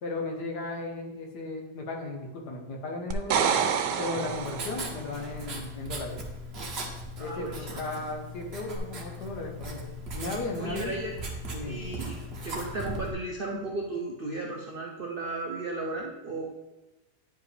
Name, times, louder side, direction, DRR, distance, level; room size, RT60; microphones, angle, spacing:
voice 1, 0.0-3.4 4.0-6.2 7.2-9.8 10.1-10.9 11.5-11.8, left 2 dB, 70° left, 1 dB, 1.7 m, -35 dB
sound 1, 3.1-5.0 8.7-8.8, right 7 dB, 85° right, 1.2 m, -27 dB
Writing, 4.1-13.1, equal, 45° right, 1.1 m, -38 dB
voice 2, 7.2-7.8 10.6-11.1 11.7-12.2 12.4-16.5, right 2 dB, 60° right, 0 dB, 0.5 m, -35 dB
9.3 x 4.9 x 3.3 m, 1.1 s
omnidirectional pair, 1.8 m